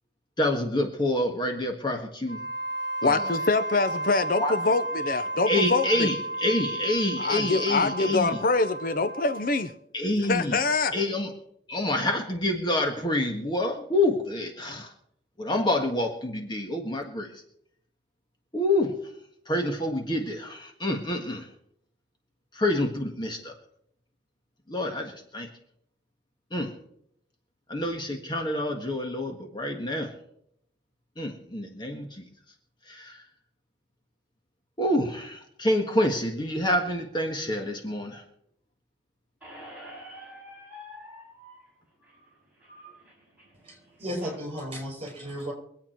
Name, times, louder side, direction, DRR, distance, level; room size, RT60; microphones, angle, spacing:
voice 1, 0.4-2.5 3.0-3.3 4.4-4.5 5.5-8.4 9.9-10.6 10.9-11.3 11.7-14.9 15.4-17.4 18.5-19.1 19.5-21.5 22.5-23.5 24.7-25.5 26.5-26.7 27.7-30.1 31.2-32.2 32.9-33.2 34.8-38.2, left 1 dB, 25° left, 2 dB, 1.6 m, -27 dB
Wind instrument woodwind instrument, 2.2-9.7, right 1 dB, 70° left, 4.8 m, -33 dB
voice 2, 3.0-6.1 7.2-9.7 10.2-10.9, left 3 dB, 50° left, 10 dB, 0.7 m, -25 dB
Squeak, 39.4-44.4, equal, 10° right, 5.6 m, -47 dB
voice 3, 43.6-45.5, equal, 30° right, 1 dB, 5.8 m, -34 dB
24.0 x 8.6 x 4.5 m, 0.70 s
head